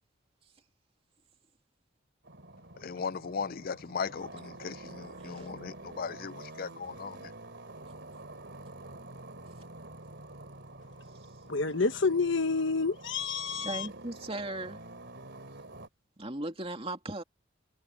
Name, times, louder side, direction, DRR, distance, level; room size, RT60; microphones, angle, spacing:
sound 1, 2.2-15.9, right 2 dB, 55° right, 3.7 m, -48 dB
voice 1, 2.8-7.3, left 6 dB, 45° left, 0.4 m, -37 dB
voice 2, 5.1-5.5 13.6-14.8 16.2-17.2, right 2 dB, 30° right, 2.8 m, -37 dB
voice 3, 11.5-13.9, left 4 dB, 60° left, 1.3 m, -29 dB
head